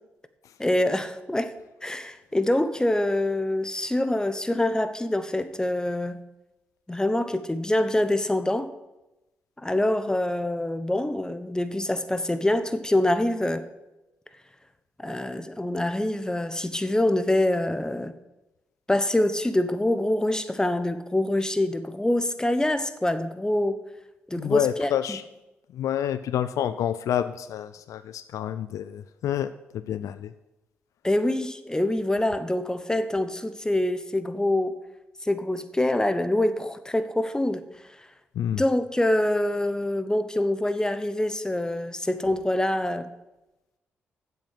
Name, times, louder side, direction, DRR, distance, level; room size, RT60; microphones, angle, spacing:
voice 1, 0.6-1.5 1.8-6.2 6.9-8.7 9.6-13.7 15.0-18.1 18.9-23.8 24.3-25.2 31.0-34.7 35.2-37.7 38.5-43.1, left 1 dB, 10° left, 11 dB, 1.0 m, -25 dB
voice 2, 24.3-25.2 25.7-29.5 29.9-30.3 38.4-38.6, left 10 dB, 65° left, 13 dB, 0.4 m, -28 dB
7.9 x 7.4 x 7.4 m, 0.99 s
hypercardioid pair, 40°, 6 cm